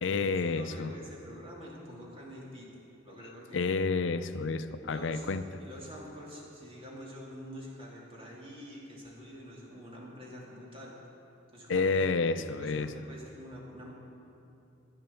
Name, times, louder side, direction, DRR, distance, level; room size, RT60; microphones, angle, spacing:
voice 1, 0.0-0.9 3.5-5.4 11.7-12.9, left 4 dB, 75° left, 11 dB, 0.5 m, -29 dB
voice 2, 0.5-2.7 3.0-3.6 4.9-5.3 5.6-11.0 11.5-11.9 12.4-13.9, equal, 30° right, -4 dB, 2.7 m, -46 dB
12.5 x 9.8 x 7.0 m, 2.7 s
head